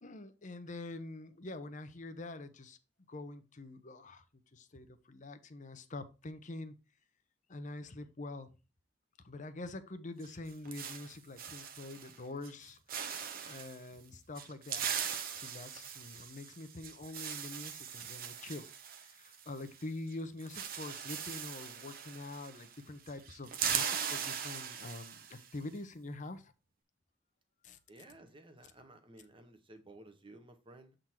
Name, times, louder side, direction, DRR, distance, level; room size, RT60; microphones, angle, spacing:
voice 1, 0.0-2.8 3.1-4.2 4.5-6.7 7.5-8.5 9.2-12.8 13.3-18.7 19.0-26.5 27.6-27.8, left 2 dB, 40° left, 0.8 m, -45 dB
sound 1, 10.2-12.2 12.4-12.6 12.9-13.8 14.4-19.8 20.1-20.2 20.4-22.8 23.1-25.5, right 7 dB, 50° right, 0.9 m, -40 dB
voice 2, 27.9-31.0, right 2 dB, 30° right, 1.1 m, -55 dB
7.8 x 3.9 x 4.4 m
head